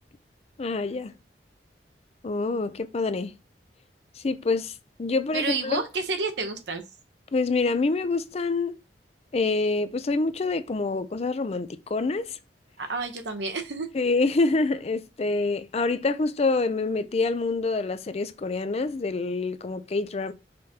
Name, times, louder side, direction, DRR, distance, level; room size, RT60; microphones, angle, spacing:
voice 1, 0.6-1.1 2.2-3.3 4.2-4.7 5.0-5.8 7.3-8.8 9.3-12.4 13.9-20.3, left 3 dB, 35° left, 0.4 m, -26 dB
voice 2, 5.3-6.8 12.8-13.9, right 4 dB, 80° right, 0.9 m, -30 dB
5.1 x 3.5 x 2.8 m
head